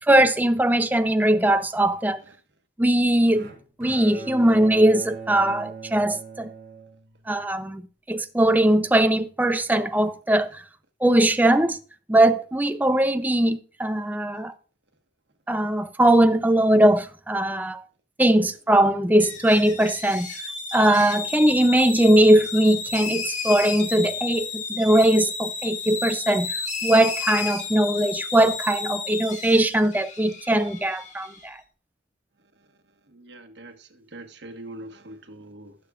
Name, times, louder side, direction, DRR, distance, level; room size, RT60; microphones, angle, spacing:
voice 1, 0.1-2.2 2.8-3.5 3.8-6.5 7.3-7.8 8.1-10.6 11.0-11.8 12.1-14.5 15.5-17.8 18.2-20.3 20.7-31.6, right 1 dB, 10° right, 0.5 m, -20 dB
Bowed string instrument, 3.3-7.6, right 4 dB, 55° right, 3.9 m, -40 dB
sound 1, 19.2-31.4, left 5 dB, 40° left, 2.1 m, -32 dB
voice 2, 33.1-35.8, right 1 dB, 75° right, 1.4 m, -43 dB
19.0 x 6.7 x 2.5 m
head